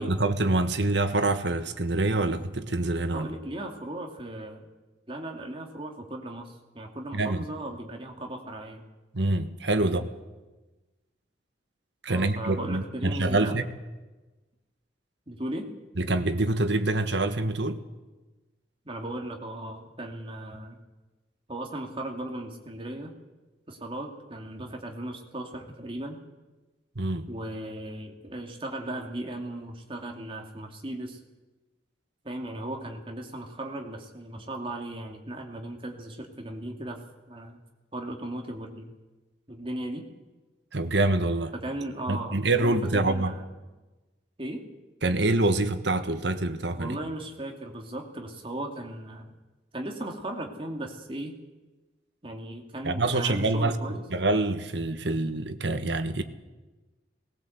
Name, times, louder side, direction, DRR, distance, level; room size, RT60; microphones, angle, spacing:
voice 1, 0.0-3.3 7.1-7.4 9.1-10.1 12.0-13.6 16.0-17.8 26.9-27.3 40.7-41.5 42.1-43.3 45.0-47.0 52.8-53.7 54.1-56.2, right 2 dB, 75° right, 1.4 m, -26 dB
voice 2, 3.1-4.7 5.1-8.9 9.8-10.0 12.1-13.6 15.3-15.7 18.8-20.8 21.5-23.1 23.7-26.2 27.3-31.2 32.2-37.6 37.9-38.9 39.5-40.0 41.5-43.4 44.4-44.6 46.8-49.4 49.7-51.4 52.2-54.0, right 1 dB, 30° right, 2.5 m, -37 dB
19.0 x 18.0 x 8.0 m
head